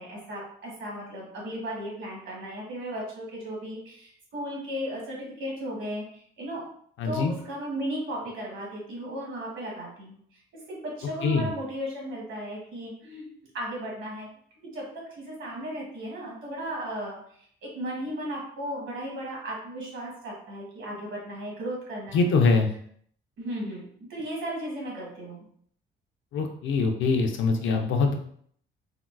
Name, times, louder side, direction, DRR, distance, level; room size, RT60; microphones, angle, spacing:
voice 1, 0.0-6.7 7.0-13.3 13.5-14.3 14.6-17.2 17.6-22.4 23.4-25.4, right 1 dB, 75° right, -3 dB, 1.3 m, -35 dB
voice 2, 7.0-7.3 11.2-11.4 22.1-22.7 26.3-28.1, left 4 dB, 75° left, 4 dB, 0.5 m, -23 dB
3.7 x 2.3 x 2.2 m, 0.62 s
cardioid pair, 90°, 20 cm